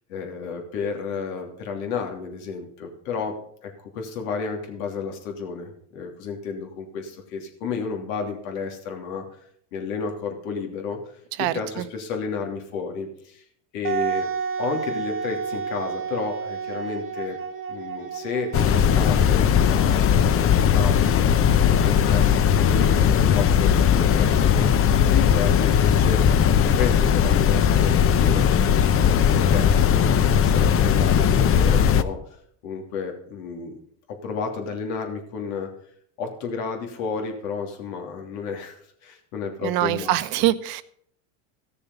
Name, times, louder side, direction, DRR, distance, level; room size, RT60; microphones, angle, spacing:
voice 1, 0.1-9.2 9.7-13.4 13.7-14.3 14.6-17.4 17.7-20.1 20.3-32.2 32.6-33.8 34.1-35.7 36.2-40.5, left 5 dB, 80° left, 3 dB, 3.0 m, -32 dB
voice 2, 11.4-11.8 39.6-40.8, right 15 dB, 60° right, 14 dB, 0.9 m, -24 dB
Wind instrument woodwind instrument, 13.8-19.4, right 6 dB, 30° right, 1.2 m, -31 dB
sound 1, 18.5-32.0, left 8 dB, 35° left, 0.7 m, -18 dB
15.5 x 7.0 x 5.4 m, 0.65 s
supercardioid pair, 110°, 41 cm